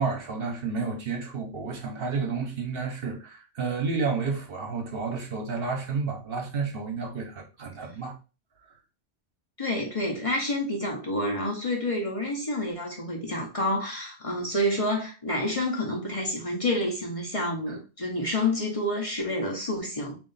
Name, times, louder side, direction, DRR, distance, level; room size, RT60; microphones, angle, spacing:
voice 1, 0.0-8.1, right 4 dB, 60° right, 1.0 m, -31 dB
voice 2, 9.6-20.2, left 1 dB, 35° left, 0.8 m, -28 dB
3.1 x 2.6 x 3.9 m
omnidirectional pair, 1.1 m